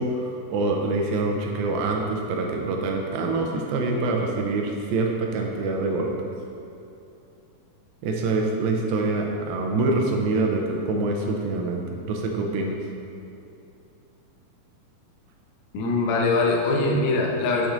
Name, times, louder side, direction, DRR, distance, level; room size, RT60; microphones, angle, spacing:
voice 1, 0.0-6.1 8.0-12.7, right 3 dB, 85° right, 1 dB, 2.4 m, -25 dB
voice 2, 15.7-17.7, left 3 dB, 90° left, -1 dB, 1.5 m, -22 dB
8.1 x 6.1 x 2.6 m, 2.7 s
omnidirectional pair, 4.3 m